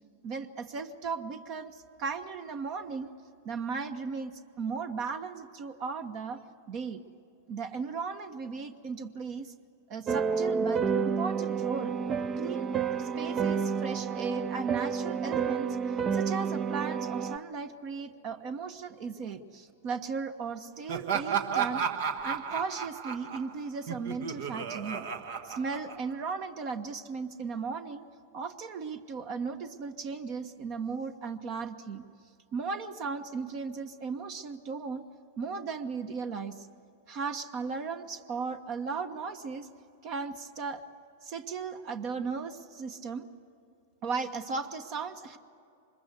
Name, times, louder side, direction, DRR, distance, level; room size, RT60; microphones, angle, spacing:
voice 1, 0.2-3.1 3.4-4.3 4.6-6.4 6.7-7.0 7.5-9.5 9.9-11.9 12.4-12.7 13.0-21.8 22.2-25.1 25.4-28.0 28.3-32.0 32.5-35.0 35.4-36.7 37.1-39.7 40.0-40.8 41.2-43.2 44.0-45.4, right 5 dB, 45° right, 8 dB, 1.2 m, -36 dB
sound 1, 10.1-17.4, right 6 dB, 30° right, 0.6 m, -30 dB
Laughter, 20.9-26.3, right 7 dB, 65° right, 1.4 m, -33 dB
25.0 x 22.0 x 8.2 m, 2.6 s
hypercardioid pair, 105°, 0 cm